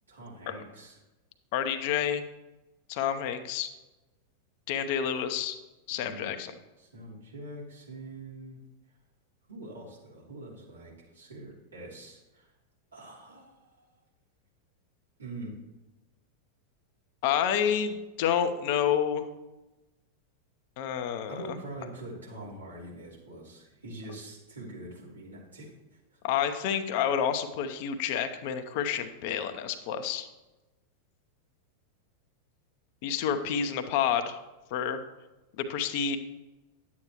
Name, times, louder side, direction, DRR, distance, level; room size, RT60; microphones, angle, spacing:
voice 1, 0.1-1.0 6.0-6.4 6.8-8.6 9.5-12.5 12.9-14.0 15.2-15.5 21.3-26.2, right 2 dB, 75° right, -5 dB, 3.3 m, -44 dB
voice 2, 1.5-2.2 2.9-3.7 4.7-5.6 5.9-6.5 17.2-19.3 20.8-21.6 26.2-30.3 33.0-34.4 34.7-35.0 35.6-36.2, left 8 dB, 50° left, 8 dB, 0.8 m, -29 dB
10.5 x 8.5 x 3.1 m, 1.1 s
figure-of-eight pair, 90°, 0 cm